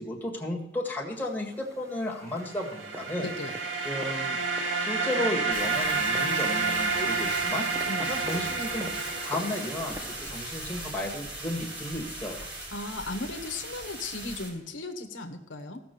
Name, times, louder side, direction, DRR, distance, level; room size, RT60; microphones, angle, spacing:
voice 1, 0.0-3.3 3.8-4.4 4.8-7.7 8.0-8.9 9.2-12.4, left 1 dB, 10° left, -2 dB, 1.7 m, -33 dB
sound 1, 1.1-10.3, right 1 dB, 15° right, 0.7 m, -46 dB
sound 2, 2.4-10.2, right 4 dB, 85° right, 1.3 m, -30 dB
voice 2, 3.2-3.5 7.2-7.3 7.9-8.1 12.7-15.8, left 2 dB, 75° left, 6 dB, 1.1 m, -36 dB
sound 3, 5.5-14.5, right 1 dB, 65° right, 3.9 m, -39 dB
15.0 x 6.2 x 6.8 m, 0.90 s
head